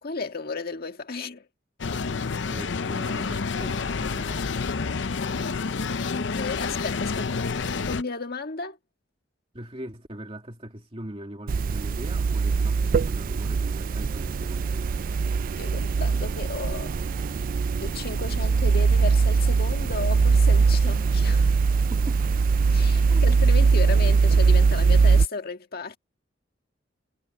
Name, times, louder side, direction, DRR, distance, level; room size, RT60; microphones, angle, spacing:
voice 1, 0.0-1.4 6.1-8.8 15.6-17.0 17.8-21.6 22.7-26.0, left 4 dB, 55° left, 1.8 m, -34 dB
sound 1, 1.8-8.0, left 4 dB, 75° left, 0.6 m, -29 dB
voice 2, 2.5-4.5 9.5-15.0 21.9-22.2 23.1-23.3, right 1 dB, 30° right, 2.2 m, -41 dB
sound 2, 11.5-25.3, right 4 dB, 50° right, 0.3 m, -21 dB
head